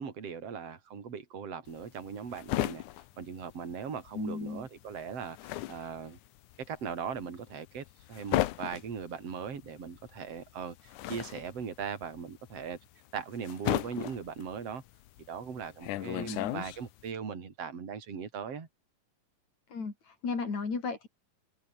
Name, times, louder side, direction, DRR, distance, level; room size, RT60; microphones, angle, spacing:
voice 1, 0.0-2.8 3.2-6.2 6.6-12.8 13.1-14.8 15.3-18.7, right 6 dB, 45° right, 4.5 m, -39 dB
sound 1, 1.7-4.2 4.5-17.1, left 15 dB, 75° left, 2.2 m, -36 dB
voice 2, 4.1-4.7 16.0-16.5 19.7-21.1, left 4 dB, 55° left, 6.3 m, -35 dB
omnidirectional pair, 3.9 m